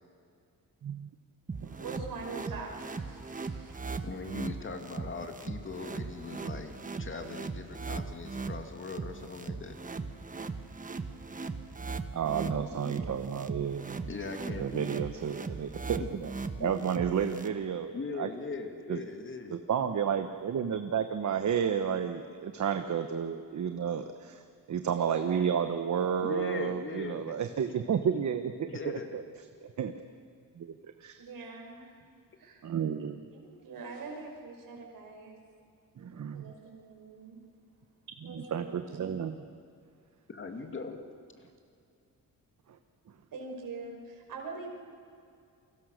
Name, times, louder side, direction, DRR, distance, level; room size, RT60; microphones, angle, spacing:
sound 1, 1.5-17.5, right 4 dB, 25° right, 1.2 m, -39 dB
voice 1, 1.8-4.1 12.5-13.4 24.9-25.5 31.2-32.0 32.4-32.6 33.3-35.4 36.0-37.4 38.3-39.2 43.3-44.7, right 4 dB, 80° right, 1 dB, 5.6 m, -44 dB
voice 2, 4.0-9.8 14.1-15.0 16.0-16.2 16.6-16.7 17.9-19.6 26.2-27.3 28.6-29.1 40.3-41.0, left 4 dB, 35° left, 5 dB, 2.5 m, -40 dB
voice 3, 12.1-14.1 14.6-16.3 16.6-18.3 18.9-19.0 19.5-24.4 24.7-29.2 29.6-29.9 30.5-31.2 32.6-33.2 36.0-36.5 38.2-39.4, right 7 dB, 55° right, 7 dB, 1.2 m, -31 dB
29.0 x 23.0 x 6.6 m, 2.4 s
wide cardioid pair, 130°, 34 cm